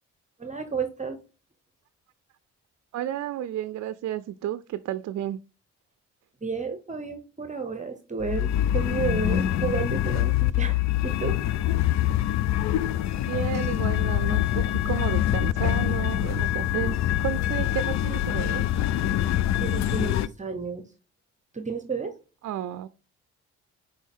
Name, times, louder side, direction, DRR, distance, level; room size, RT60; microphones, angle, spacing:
voice 1, 0.4-1.2 6.4-11.4 19.6-20.8 21.5-22.2, right 5 dB, 25° right, 0.9 m, -32 dB
voice 2, 2.9-5.4 13.3-18.7 22.4-22.9, right 11 dB, 60° right, 0.5 m, -32 dB
sound 1, 8.2-20.3, left 12 dB, 65° left, 0.5 m, -25 dB
6.1 x 4.9 x 3.7 m
cardioid pair, 85°, 30 cm